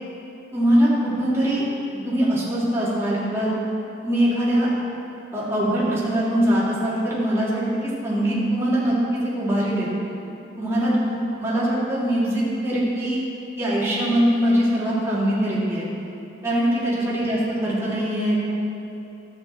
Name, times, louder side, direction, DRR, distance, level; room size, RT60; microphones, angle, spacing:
voice 1, 0.5-1.6 2.0-3.5 4.0-4.7 5.3-9.9 10.6-13.2 13.6-15.9 16.4-18.5, right 1 dB, 15° right, -8 dB, 2.2 m, -22 dB
11.5 x 8.1 x 4.3 m, 2.8 s
head